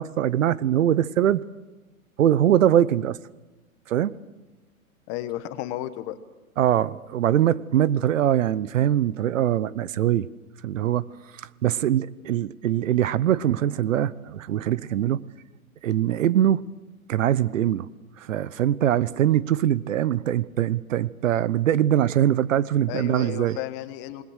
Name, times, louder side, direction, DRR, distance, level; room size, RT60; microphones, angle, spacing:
voice 1, 0.0-1.4 2.2-3.2 3.9-4.1 6.6-10.3 10.6-15.2 15.8-16.7 17.1-17.9 18.2-23.6, right 11 dB, 60° right, 20 dB, 0.9 m, -22 dB
voice 2, 5.1-6.2 22.9-24.2, left 13 dB, 25° left, 12 dB, 1.1 m, -33 dB
27.0 x 21.0 x 6.5 m, 1.2 s
hypercardioid pair, 140°, 44 cm